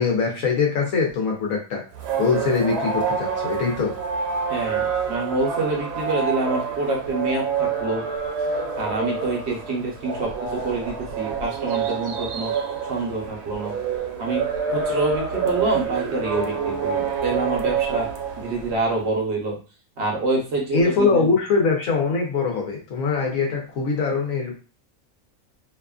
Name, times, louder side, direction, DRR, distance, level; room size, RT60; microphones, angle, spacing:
voice 1, 0.0-1.8 2.2-3.9 20.7-24.5, left 4 dB, 80° left, 0 dB, 1.1 m, -22 dB
sound 1, 1.9-18.9, right 6 dB, 85° right, 1.0 m, -27 dB
voice 2, 4.5-8.0 8.8-12.5 12.8-13.7 14.2-14.4 14.7-18.1 18.4-19.6 20.0-21.3, right 2 dB, 55° right, -1 dB, 1.1 m, -26 dB
2.8 x 2.3 x 2.3 m, 0.34 s
omnidirectional pair, 1.4 m